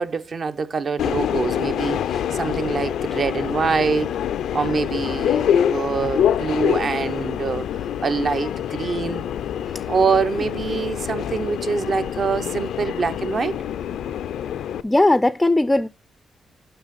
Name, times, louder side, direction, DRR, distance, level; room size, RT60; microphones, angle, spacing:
voice 1, 0.0-4.2 4.5-7.7 8.0-9.2 9.9-13.6, right 5 dB, 50° right, 0.7 m, -25 dB
Subway metro underground, 1.0-14.8, left 9 dB, 90° left, 0.4 m, -25 dB
voice 2, 14.8-15.9, left 2 dB, 15° left, 0.3 m, -18 dB
7.9 x 5.8 x 4.0 m
cardioid pair, 90°, 0 cm